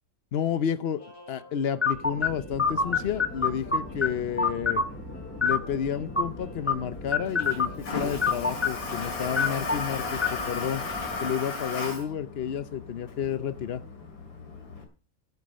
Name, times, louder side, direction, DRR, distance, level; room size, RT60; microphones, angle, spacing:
voice 1, 0.3-4.8 5.4-10.8 11.2-13.8, left 8 dB, 70° left, 14 dB, 0.5 m, -31 dB
sound 1, 1.0-12.1, equal, 45° left, 6.5 m, -49 dB
sound 2, 1.8-11.3, left 4 dB, 15° left, 0.5 m, -29 dB
Toilet flush, 2.6-14.8, left 4 dB, 90° left, 3.4 m, -37 dB
11.0 x 8.3 x 6.3 m, 0.37 s
omnidirectional pair, 2.0 m